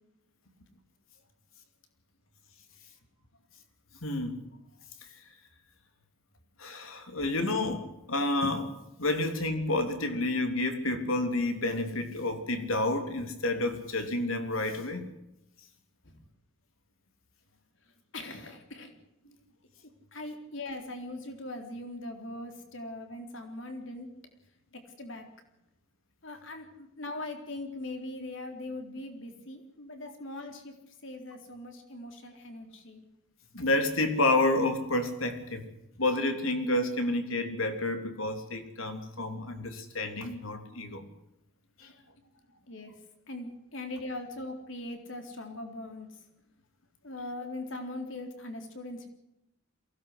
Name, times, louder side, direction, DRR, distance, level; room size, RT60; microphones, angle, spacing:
voice 1, 4.0-4.4 6.6-15.1 33.5-35.6 36.0-41.0 41.8-41.9, left 2 dB, 80° left, 7 dB, 3.5 m, -30 dB
voice 2, 18.1-18.9 20.1-24.1 25.0-25.3 26.2-30.7 31.0-33.0 42.7-42.9 43.3-46.2 47.0-49.1, left 2 dB, 65° left, 5 dB, 3.9 m, -40 dB
23.0 x 17.0 x 8.3 m, 0.90 s
head